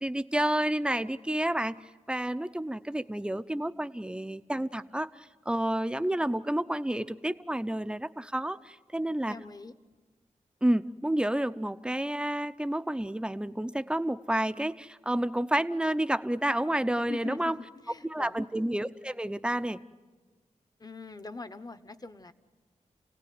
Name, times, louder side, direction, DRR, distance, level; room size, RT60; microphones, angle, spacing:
voice 1, 0.0-1.8 2.1-9.4 10.6-17.5 18.1-19.8, right 1 dB, 5° right, 11 dB, 0.7 m, -30 dB
voice 2, 9.3-9.7 17.1-18.5 20.8-22.3, left 3 dB, 30° left, 12 dB, 1.1 m, -43 dB
29.5 x 17.5 x 9.5 m, 1.4 s
wide cardioid pair, 85°, 13 cm